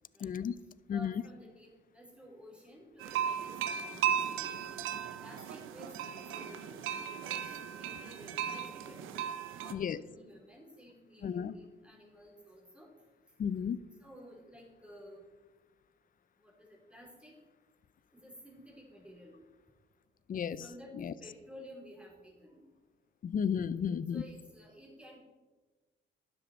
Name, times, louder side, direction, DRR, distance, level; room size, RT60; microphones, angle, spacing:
voice 1, 0.2-0.5 0.9-1.2 9.7-10.0 11.2-11.5 13.4-13.8 20.3-20.6 21.0-21.1 23.2-24.2, left 7 dB, 45° left, 17 dB, 0.6 m, -33 dB
voice 2, 0.9-4.7 5.2-9.1 9.5-12.9 14.0-15.3 16.4-17.4 18.1-19.4 20.6-22.6 23.8-25.2, equal, 5° right, -2 dB, 4.1 m, -54 dB
sound 1, 3.0-9.7, right 9 dB, 85° right, 0.8 m, -36 dB
12.0 x 9.9 x 4.5 m, 1.3 s
cardioid pair, 90°, 20 cm